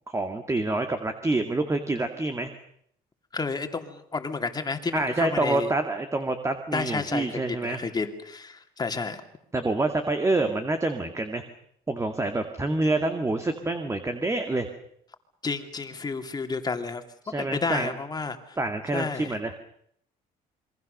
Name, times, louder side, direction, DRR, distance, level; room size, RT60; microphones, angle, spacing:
voice 1, 0.1-2.5 4.9-7.8 9.5-11.4 11.9-14.7 17.2-17.9 18.6-19.6, right 2 dB, 15° right, 6 dB, 2.2 m, -27 dB
voice 2, 3.3-5.7 6.7-9.2 15.4-17.0 17.4-18.6 18.9-19.4, left 4 dB, 25° left, 6 dB, 2.8 m, -31 dB
28.0 x 23.0 x 6.7 m, 0.69 s
cardioid pair, 110°, 17 cm